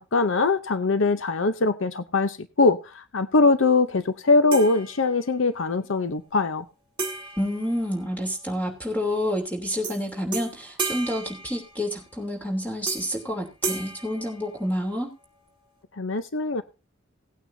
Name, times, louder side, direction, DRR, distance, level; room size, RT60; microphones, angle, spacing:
voice 1, 0.0-6.6 16.0-16.6, left 3 dB, 70° left, 0.7 m, -22 dB
sound 1, 4.5-5.5 7.0-8.6 9.8-10.0 10.3-12.1 12.9-13.3 13.6-15.1, right 4 dB, 25° right, 2.0 m, -34 dB
voice 2, 7.4-15.1, equal, 10° left, 3.0 m, -29 dB
18.0 x 9.1 x 2.7 m
head